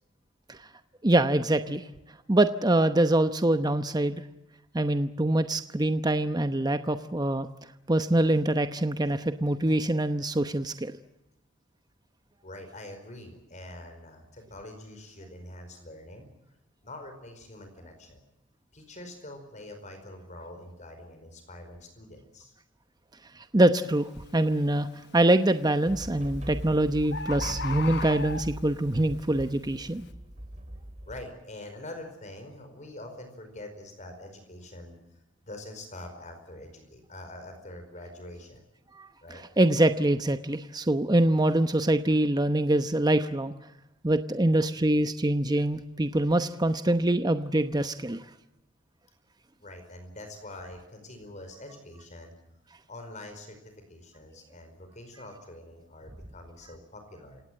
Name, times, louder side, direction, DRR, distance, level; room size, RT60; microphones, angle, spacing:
voice 1, 1.0-1.9 2.3-4.2 4.7-7.5 7.9-10.9 23.4-30.1 39.0-43.5 44.0-48.2, right 1 dB, 20° right, 9 dB, 0.9 m, -24 dB
voice 2, 12.4-16.3 16.8-18.2 18.7-22.5 31.1-35.0 35.5-38.6 39.2-39.4 49.6-52.3 52.9-57.4, left 1 dB, 40° left, 6 dB, 5.0 m, -45 dB
Bird, 23.8-24.1 24.6-25.1 26.1-26.2 26.5-26.6 26.8-26.9 27.1-28.8 29.4-29.5, left 4 dB, 60° left, 1.1 m, -36 dB
sound 1, 25.8-31.2, right 1 dB, 35° right, 3.1 m, -40 dB
28.5 x 18.0 x 7.7 m, 0.91 s
head